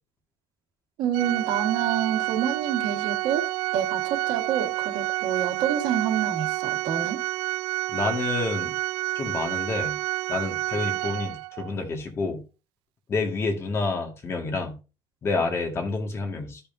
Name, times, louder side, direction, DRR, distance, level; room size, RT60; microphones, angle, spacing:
voice 1, 1.0-7.2, right 9 dB, 70° right, 1.5 m, -28 dB
Organ, 1.1-11.7, right 19 dB, 85° right, 0.3 m, -29 dB
voice 2, 7.9-8.7 9.1-10.0 10.3-12.4 13.1-14.8 15.2-16.6, left 3 dB, 30° left, 1.8 m, -28 dB
13.0 x 5.4 x 2.6 m
cardioid pair, 135°, 8 cm